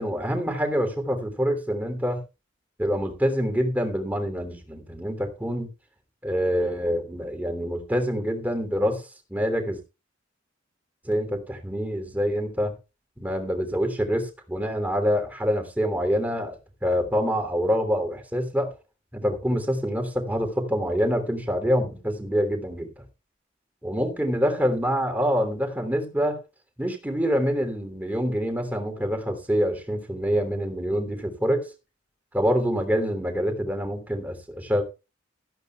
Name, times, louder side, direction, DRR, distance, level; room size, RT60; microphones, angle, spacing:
voice 1, 0.0-2.2 2.8-5.7 6.2-9.0 9.3-9.8 11.0-12.7 13.2-16.6 16.8-18.7 19.1-22.9 23.8-26.4 26.8-31.7 32.3-34.8, equal, 10° right, 3.1 m, -26 dB
16.5 x 13.5 x 2.4 m
head